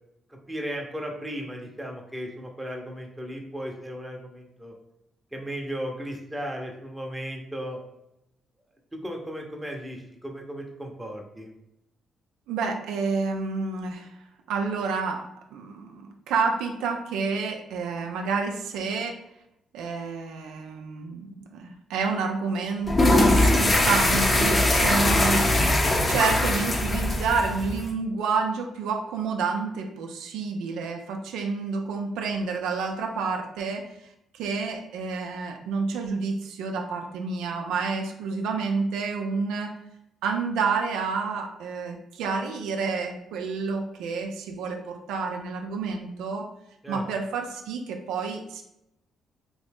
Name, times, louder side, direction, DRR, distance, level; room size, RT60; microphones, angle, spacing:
voice 1, 0.5-4.7 5.3-7.8 8.9-11.5 46.8-47.0, equal, 10° right, 1 dB, 0.7 m, -35 dB
voice 2, 12.5-14.1 14.5-19.2 19.7-33.9 34.3-39.7 40.2-46.5 46.9-48.6, right 4 dB, 90° right, 3 dB, 0.4 m, -29 dB
sound 1, 22.8-27.9, left 1 dB, 25° left, 0.6 m, -21 dB
3.0 x 2.6 x 3.4 m, 0.84 s
cardioid pair, 90°, 0 cm